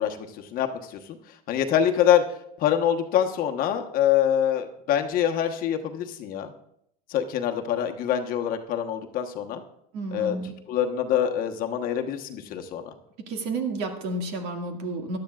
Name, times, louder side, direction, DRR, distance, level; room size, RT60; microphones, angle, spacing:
voice 1, 0.0-2.2 2.6-6.5 7.1-9.6 10.1-10.4 10.7-12.9, left 9 dB, 45° left, 4 dB, 1.1 m, -25 dB
voice 2, 9.9-10.5 13.2-15.2, right 3 dB, 55° right, 3 dB, 2.0 m, -31 dB
16.5 x 11.5 x 2.4 m, 0.76 s
supercardioid pair, 120°, 20 cm